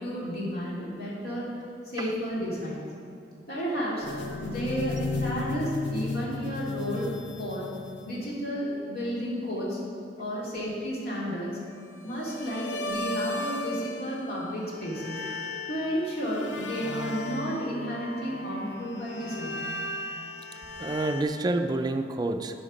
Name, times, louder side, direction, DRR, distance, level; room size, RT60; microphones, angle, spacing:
voice 1, 0.0-1.5 1.8-2.9 3.5-4.1 4.4-7.1 7.4-7.7 8.0-9.8 10.2-11.6 12.0-15.3 15.7-19.6, equal, 60° left, -6 dB, 2.5 m, -32 dB
sound 1, 4.0-8.2 12.1-14.4 14.7-21.2, left 2 dB, 75° left, 0.7 m, -35 dB
voice 2, 20.8-22.5, right 2 dB, 20° right, 7 dB, 0.4 m, -28 dB
11.5 x 5.1 x 5.1 m, 2.4 s
head